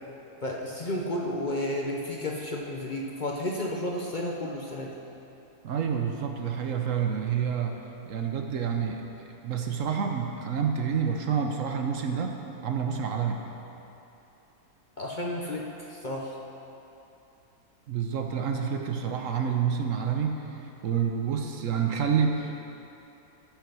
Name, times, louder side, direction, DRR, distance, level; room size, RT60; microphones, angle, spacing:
voice 1, 0.4-4.9 15.0-16.4, left 1 dB, 40° left, -2 dB, 0.8 m, -32 dB
voice 2, 5.6-7.8 8.1-9.0 9.4-13.4 17.9-20.3 20.8-22.6, right 7 dB, 65° right, 3 dB, 1.1 m, -28 dB
13.5 x 5.8 x 6.1 m, 2.9 s
omnidirectional pair, 1.5 m